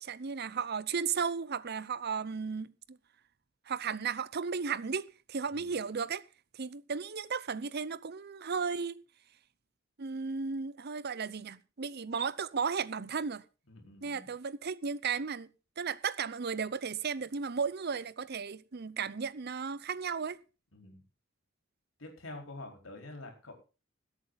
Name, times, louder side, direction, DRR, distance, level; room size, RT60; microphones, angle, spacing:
voice 1, 0.0-3.0 3.7-6.2 6.5-9.0 10.0-13.4 14.0-15.5 15.8-20.4, right 5 dB, 55° right, 0.7 m, -35 dB
voice 2, 13.7-14.3 20.7-21.0 22.0-23.5, left 2 dB, 90° left, 4.5 m, -47 dB
19.5 x 8.5 x 4.0 m
head